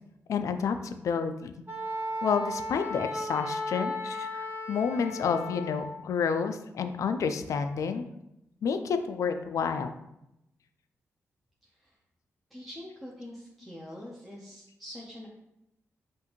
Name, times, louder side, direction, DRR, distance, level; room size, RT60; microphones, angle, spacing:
voice 1, 0.3-1.5 2.2-8.0 8.6-9.9, left 6 dB, 75° left, 8 dB, 0.3 m, -30 dB
Wind instrument woodwind instrument, 1.7-5.9, left 1 dB, 35° right, 1.0 m, -35 dB
voice 2, 11.6-12.0 12.5-15.3, left 1 dB, ahead, -6 dB, 0.8 m, -44 dB
5.7 x 2.6 x 3.0 m, 0.85 s
wide cardioid pair, 105°, 5 cm